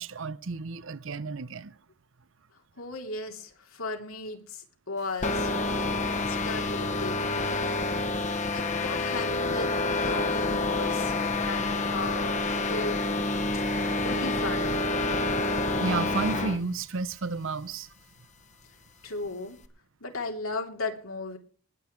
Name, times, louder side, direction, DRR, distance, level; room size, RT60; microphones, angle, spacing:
voice 1, 0.0-1.7 15.8-17.9, right 4 dB, 70° right, 0.7 m, -32 dB
voice 2, 2.8-5.5 6.2-7.3 8.5-9.7 10.0-11.1 11.4-13.3 13.8-14.8 19.0-19.6 20.0-21.4, left 3 dB, 85° left, 3.2 m, -36 dB
sound 1, 5.2-16.6, left 2 dB, 35° left, 1.2 m, -28 dB
20.0 x 8.8 x 4.6 m
head